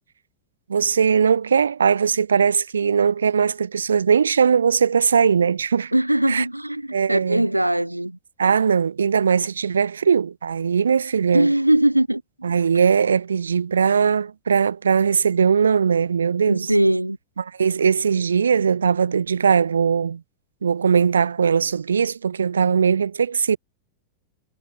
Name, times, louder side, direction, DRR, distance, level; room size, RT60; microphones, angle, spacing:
voice 1, 0.7-5.9 6.3-6.4 6.9-7.5 8.4-11.5 12.4-16.7 17.4-20.2 20.6-23.6, right 6 dB, 70° right, 0.5 m, -20 dB
voice 2, 5.9-8.2 11.3-12.2 16.5-17.2, right 1 dB, 85° right, 0.9 m, -20 dB
figure-of-eight pair, 90°, 0 cm